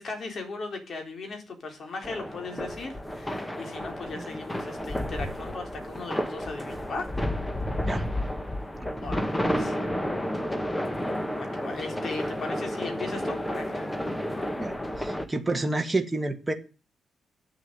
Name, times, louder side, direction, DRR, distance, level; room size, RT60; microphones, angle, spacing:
voice 1, 0.0-7.1 9.0-9.8 11.3-13.9 14.3-14.6, left 3 dB, 50° left, 4 dB, 3.9 m, -38 dB
sound 1, 2.0-15.2, left 1 dB, 10° left, 1.5 m, -31 dB
voice 2, 14.6-16.5, right 2 dB, 15° right, 4 dB, 1.6 m, -29 dB
9.0 x 7.3 x 9.1 m, 0.33 s
cardioid pair, 105°, 0 cm